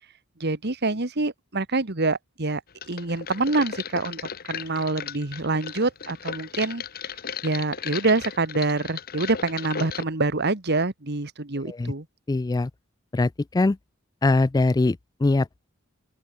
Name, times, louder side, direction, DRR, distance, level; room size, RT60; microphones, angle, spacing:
voice 1, 0.4-2.6 2.9-6.8 7.4-12.1, right 3 dB, 50° right, 1.8 m, -26 dB
sound 1, 2.8-10.0, left 7 dB, 45° left, 1.1 m, -36 dB
voice 2, 12.3-12.7 13.1-13.8 14.2-15.7, left 2 dB, 20° left, 0.3 m, -22 dB
open air
head